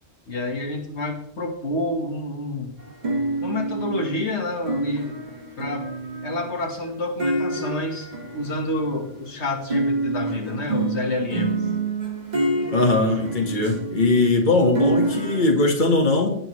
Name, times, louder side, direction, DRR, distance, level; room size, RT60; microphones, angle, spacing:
voice 1, 0.3-2.7 3.4-5.1 5.6-5.9 6.2-11.7, left 2 dB, 70° left, 2 dB, 1.8 m, -28 dB
sound 1, 2.8-9.2 9.7-15.5, right 2 dB, 35° right, 2.0 m, -27 dB
voice 2, 12.7-16.3, left 2 dB, 45° left, 2 dB, 1.8 m, -20 dB
18.0 x 7.5 x 3.2 m, 0.69 s
omnidirectional pair, 1.2 m